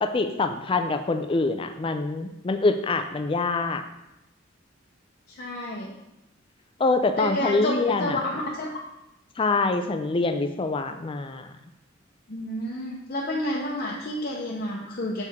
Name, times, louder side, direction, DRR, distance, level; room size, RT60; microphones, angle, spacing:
voice 1, 0.0-3.8 6.8-8.2 9.4-11.5, left 3 dB, 30° left, 8 dB, 0.4 m, -25 dB
voice 2, 5.3-5.9 7.2-7.7 8.0-8.7 12.3-15.2, left 1 dB, 50° left, -4 dB, 0.8 m, -30 dB
6.6 x 4.6 x 3.5 m, 0.88 s
head